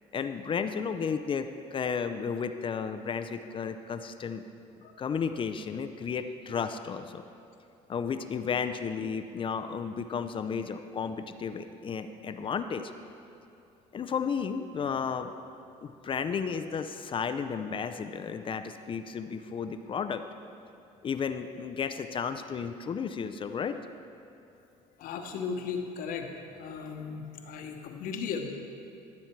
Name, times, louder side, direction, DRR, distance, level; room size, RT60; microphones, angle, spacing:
voice 1, 0.1-4.4 5.0-7.2 7.9-12.9 13.9-15.3 15.8-20.2 21.0-23.8, left 6 dB, 35° left, 9 dB, 0.5 m, -33 dB
voice 2, 4.8-5.2 25.0-26.3 26.6-28.5, left 6 dB, 65° left, 4 dB, 1.2 m, -36 dB
13.5 x 7.1 x 4.6 m, 2.7 s
supercardioid pair, 100°, 15 cm